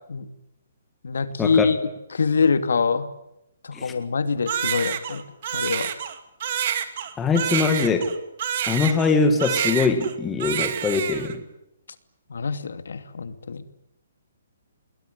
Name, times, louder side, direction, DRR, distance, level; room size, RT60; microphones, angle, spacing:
voice 1, 1.0-1.8 2.1-3.1 3.6-5.2 5.5-5.9 12.3-13.6, left 5 dB, 80° left, 11 dB, 2.6 m, -24 dB
Crying sobbing, 4.5-9.1 9.4-10.1 10.4-11.3, right 9 dB, 30° right, 2.1 m, -28 dB
voice 2, 7.2-8.2 8.7-11.4, left 4 dB, 5° left, 6 dB, 1.8 m, -22 dB
28.0 x 21.0 x 9.7 m, 0.84 s
hypercardioid pair, 180°, 0 cm